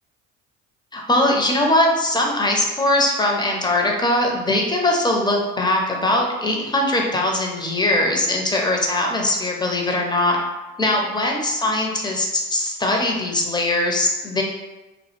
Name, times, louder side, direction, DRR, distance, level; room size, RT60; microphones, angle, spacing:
voice 1, 0.9-10.4 10.8-14.4, left 1 dB, 10° left, 0 dB, 0.5 m, -21 dB
2.2 x 2.1 x 3.0 m, 1.1 s
hypercardioid pair, 55°, 41 cm